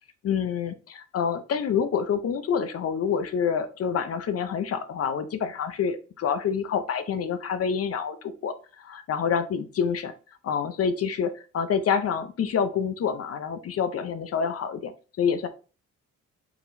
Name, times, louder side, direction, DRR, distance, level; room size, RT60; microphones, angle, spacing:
voice 1, 0.2-10.1 10.4-14.9 15.2-15.5, left 7 dB, 50° left, 11 dB, 0.7 m, -27 dB
4.7 x 3.6 x 2.7 m, 0.36 s
cardioid pair, 90°, 30 cm